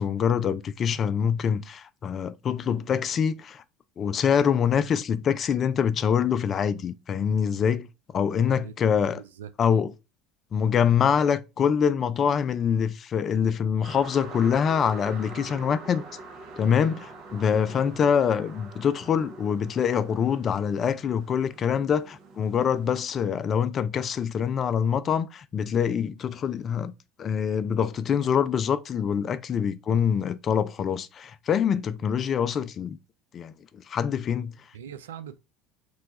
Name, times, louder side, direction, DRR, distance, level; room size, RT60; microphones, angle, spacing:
voice 1, 0.0-3.6 4.0-7.9 8.1-9.2 9.6-9.9 10.5-16.0 16.6-26.9 27.2-33.0 33.3-34.6, left 7 dB, 40° left, 0.3 m, -25 dB
voice 2, 8.2-9.5 34.7-35.4, right 9 dB, 80° right, 0.3 m, -43 dB
sound 1, 13.8-23.0, right 3 dB, 50° right, 0.8 m, -44 dB
3.0 x 2.2 x 3.9 m
hypercardioid pair, 70°, 0 cm